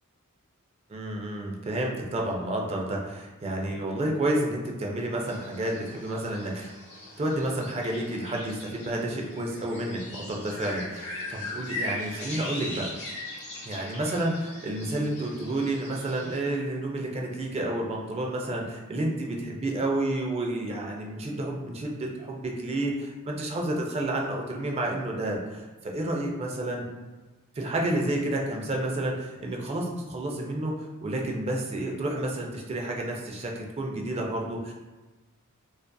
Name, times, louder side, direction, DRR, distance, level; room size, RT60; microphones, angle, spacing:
voice 1, 0.9-6.7 7.2-12.9 13.6-26.8 27.6-30.7 31.0-34.7, right 1 dB, 30° right, 0 dB, 0.3 m, -30 dB
sound 1, 5.3-16.4, left 2 dB, 30° left, 0.9 m, -40 dB
2.5 x 2.4 x 2.2 m, 1.2 s
head